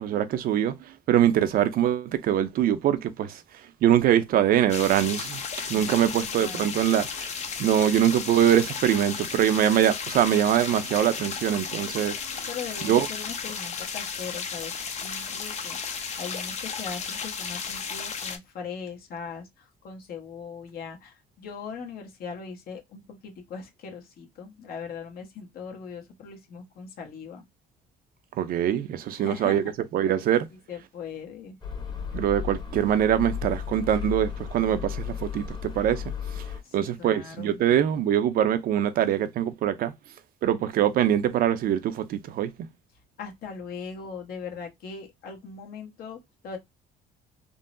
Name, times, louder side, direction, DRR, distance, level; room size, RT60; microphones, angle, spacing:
voice 1, 0.0-5.4 5.7-7.3 7.6-12.2 12.8-13.1 28.4-29.6 29.9-30.5 32.1-36.5 36.7-39.9 40.4-42.5, right 10 dB, 60° right, 0.5 m, -23 dB
sound 1, 4.7-18.4, left 6 dB, 40° left, 0.6 m, -34 dB
voice 2, 5.7-6.7 12.5-14.8 15.0-27.4 29.1-29.7 30.0-30.1 30.7-31.6 36.6-37.6 43.2-46.6, left 5 dB, 65° left, 1.0 m, -40 dB
sound 2, 31.6-36.6, left 8 dB, 25° left, 1.0 m, -34 dB
3.7 x 2.0 x 2.5 m
cardioid pair, 110°, 17 cm